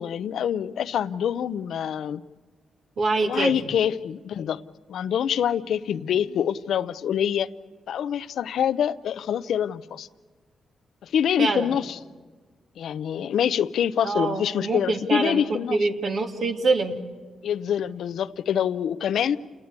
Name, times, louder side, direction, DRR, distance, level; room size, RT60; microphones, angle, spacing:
voice 1, 0.0-2.2 3.2-4.6 4.9-7.5 7.9-10.1 11.0-12.0 12.8-15.8 17.4-19.4, left 9 dB, 75° left, 16 dB, 0.7 m, -25 dB
voice 2, 3.0-3.5 11.4-11.7 14.0-17.0, right 3 dB, 65° right, 3 dB, 2.6 m, -25 dB
28.5 x 19.5 x 8.3 m, 1.4 s
cardioid pair, 65°, 0 cm